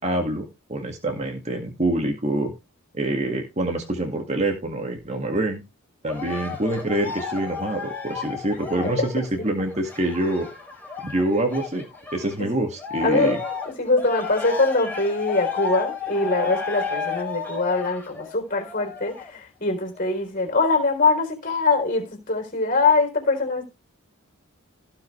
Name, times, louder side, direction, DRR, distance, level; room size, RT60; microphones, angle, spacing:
voice 1, 0.0-2.5 2.9-5.6 6.0-10.5 11.0-11.9 12.1-13.4, right 1 dB, 30° right, 2.0 m, -26 dB
Cheering, 6.1-12.4 12.8-19.4 20.0-20.1, left 5 dB, 10° left, 4.4 m, -32 dB
voice 2, 13.0-13.4 13.7-23.7, left 3 dB, 40° left, 3.9 m, -23 dB
17.5 x 5.9 x 3.3 m
head